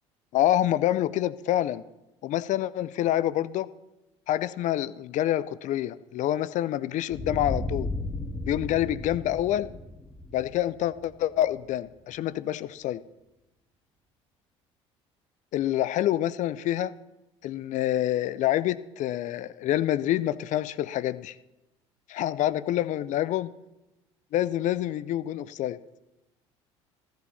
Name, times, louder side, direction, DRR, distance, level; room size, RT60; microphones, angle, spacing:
voice 1, 0.3-1.8 2.2-3.7 4.3-7.9 8.5-9.7 10.3-13.0 15.5-16.9 17.4-21.4 22.1-23.5 24.3-25.8, left 13 dB, 55° left, 17 dB, 0.5 m, -27 dB
sound 1, 7.1-11.7, left 2 dB, 5° left, 1.7 m, -35 dB
14.0 x 13.5 x 4.2 m, 0.97 s
hypercardioid pair, 60°, 15 cm